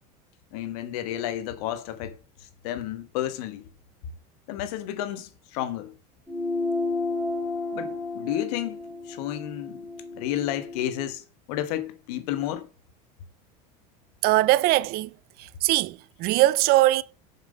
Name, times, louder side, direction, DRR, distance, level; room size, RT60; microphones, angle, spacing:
voice 1, 0.5-2.2 2.6-3.6 4.5-5.9 7.7-8.8 9.1-9.8 10.2-12.7, left 12 dB, 75° left, 1.3 m, -31 dB
sound 1, 6.3-11.1, left 2 dB, ahead, 3.9 m, -32 dB
voice 2, 14.2-15.1 15.4-17.0, right 17 dB, 55° right, 0.5 m, -21 dB
7.1 x 5.8 x 5.2 m
supercardioid pair, 100°, 20 cm